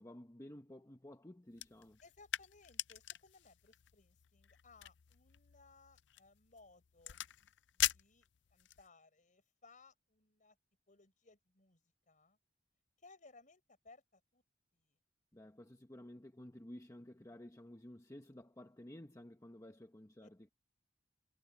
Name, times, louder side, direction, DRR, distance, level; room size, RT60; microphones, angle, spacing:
voice 1, 0.0-2.0 15.3-20.5, left 1 dB, 20° left, 1.1 m, -53 dB
sound 1, 1.5-8.9, left 13 dB, 70° left, 0.5 m, -43 dB
voice 2, 2.0-7.2 7.7-10.6 10.9-11.8 12.1-12.4 13.0-14.4 14.7-15.0 20.2-20.3, left 3 dB, 45° left, 5.9 m, -64 dB
head